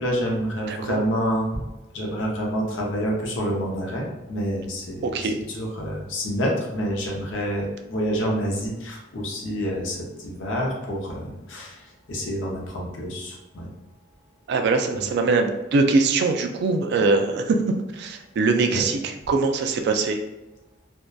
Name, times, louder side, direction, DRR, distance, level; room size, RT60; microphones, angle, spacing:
voice 1, 0.0-1.6 1.9-10.0 10.2-11.8 12.1-13.7 14.9-15.0 18.7-18.8, equal, 75° left, -1 dB, 0.6 m, -28 dB
voice 2, 0.7-1.0 5.0-5.4 14.5-17.6 17.9-20.2, right 3 dB, 60° right, 5 dB, 0.3 m, -22 dB
2.6 x 2.1 x 2.2 m, 1.0 s
head